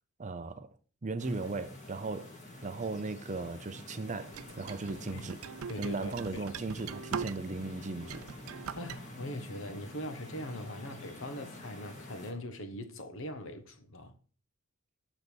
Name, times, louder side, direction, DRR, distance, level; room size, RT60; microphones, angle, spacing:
voice 1, 0.2-0.7 1.0-2.3 2.6-5.4 5.8-8.2, right 3 dB, 35° right, 0.6 m, -37 dB
sound 1, 1.2-12.3, left 1 dB, 35° left, 1.7 m, -48 dB
sound 2, 4.3-7.7 8.0-9.0, right 7 dB, 80° right, 0.4 m, -41 dB
voice 2, 5.7-6.4 8.7-14.1, equal, 65° left, 1.1 m, -41 dB
6.9 x 4.0 x 6.2 m
head